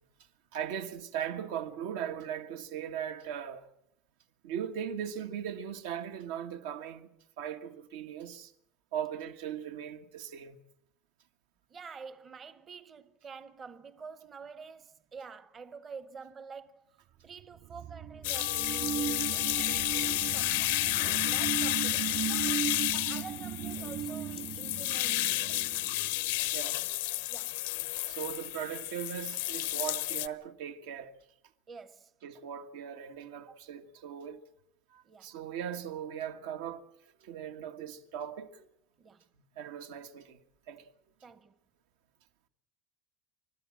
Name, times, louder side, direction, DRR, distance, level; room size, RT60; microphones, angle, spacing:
voice 1, 0.5-3.7 4.4-7.1 7.4-8.5 8.9-10.6 22.5-22.7 26.5-26.8 28.0-31.1 32.2-34.4 34.9-36.8 37.2-38.7 39.5-40.4 40.7-40.9, right 9 dB, 90° right, 1.6 m, -39 dB
voice 2, 11.7-16.9 17.2-25.5 27.3-27.6 31.7-32.1 33.5-33.6 35.0-35.3 39.0-39.2 41.2-41.6, right 5 dB, 25° right, 0.8 m, -48 dB
sound 1, 17.4-26.6, right 11 dB, 50° right, 2.2 m, -37 dB
sound 2, 18.2-30.3, left 19 dB, 90° left, 0.7 m, -31 dB
sound 3, 18.3-24.6 25.0-26.2 26.5-27.9 28.3-28.4 28.9-29.0 29.2-29.3, right 8 dB, 70° right, 1.1 m, -53 dB
30.0 x 13.0 x 7.5 m
cardioid pair, 155°, 0 cm